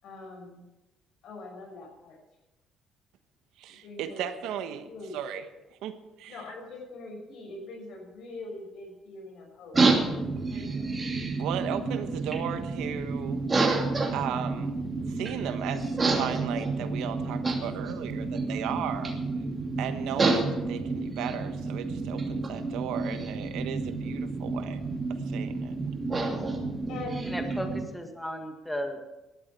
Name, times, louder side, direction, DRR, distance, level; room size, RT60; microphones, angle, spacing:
voice 1, 0.0-0.6 1.2-2.2 3.7-4.2 4.8-5.2 6.3-9.8 10.4-10.9 26.9-27.3, left 2 dB, 70° left, 1 dB, 6.1 m, -42 dB
voice 2, 3.6-5.4 5.8-6.4 10.5-10.7 11.4-13.4 14.1-14.8 15.1-19.1 19.8-24.8 25.1-25.7, right 9 dB, 85° right, 9 dB, 1.2 m, -36 dB
sound 1, 9.7-27.8, right 3 dB, 25° right, 2.7 m, -29 dB
voice 3, 27.3-29.1, equal, 5° left, 4 dB, 1.8 m, -35 dB
18.0 x 12.5 x 4.7 m, 1.1 s
cardioid pair, 100°, 0 cm